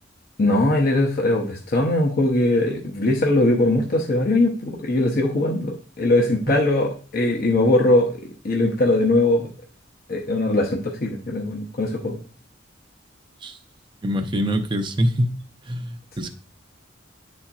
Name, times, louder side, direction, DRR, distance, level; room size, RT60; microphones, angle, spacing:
voice 1, 0.4-8.2 8.4-9.5 10.1-12.2, left 2 dB, 50° left, 0 dB, 0.8 m, -20 dB
voice 2, 14.0-16.3, equal, 25° right, 6 dB, 0.6 m, -25 dB
10.0 x 4.2 x 2.4 m, 0.38 s
head